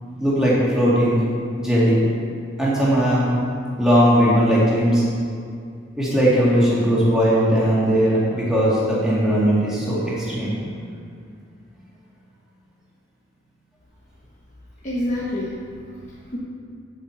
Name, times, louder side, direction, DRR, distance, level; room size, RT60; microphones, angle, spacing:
voice 1, 0.2-1.2 1.6-2.0 2.6-3.3 3.8-5.0 6.0-10.6, equal, 5° right, -8 dB, 2.3 m, -18 dB
voice 2, 14.8-16.4, left 1 dB, 35° left, -7 dB, 1.3 m, -28 dB
8.2 x 5.5 x 7.7 m, 2.3 s
head